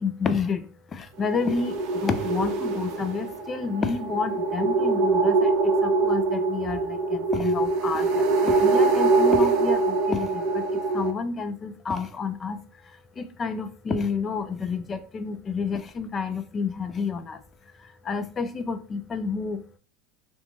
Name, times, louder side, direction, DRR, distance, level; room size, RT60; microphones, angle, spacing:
voice 1, 0.0-17.4 17.8-19.6, left 5 dB, 25° left, 9 dB, 0.4 m, -30 dB
sound 1, 1.2-11.1, right 3 dB, 55° right, 0.5 m, -23 dB
2.8 x 2.3 x 2.5 m, 0.38 s
supercardioid pair, 115°, 0 cm